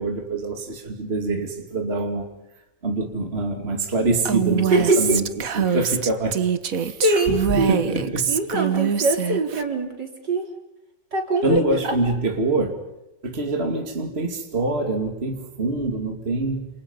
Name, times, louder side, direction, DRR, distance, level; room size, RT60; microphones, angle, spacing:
voice 1, 0.0-2.3 2.8-5.2 5.5-6.4 6.8-7.0 7.5-8.3 11.4-12.8 13.2-16.7, right 2 dB, 35° right, 4 dB, 2.7 m, -25 dB
Female speech woman speaking, 4.3-9.6, right 7 dB, 55° right, 1.6 m, -24 dB
voice 2, 4.7-5.2 5.7-5.9 7.0-7.9 8.3-10.5 11.1-12.0, right 2 dB, 70° right, 3 dB, 4.7 m, -23 dB
29.0 x 28.5 x 5.5 m, 0.99 s
omnidirectional pair, 1.9 m